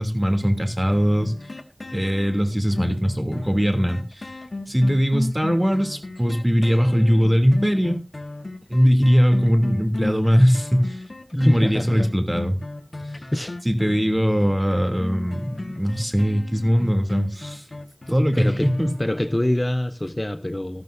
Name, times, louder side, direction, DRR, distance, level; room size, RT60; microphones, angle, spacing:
voice 1, 0.0-1.3 1.9-4.3 4.7-8.0 8.7-11.0 11.3-12.6 13.6-17.7 18.1-18.9, equal, 20° right, 3.0 m, -20 dB
sound 1, 0.9-19.6 20.1-20.2, left 2 dB, 70° left, 1.5 m, -35 dB
voice 2, 11.3-12.1 13.3-13.6 18.4-18.7 19.0-20.8, left 1 dB, 25° left, 0.7 m, -25 dB
13.5 x 13.0 x 2.7 m
wide cardioid pair, 45°, 0 cm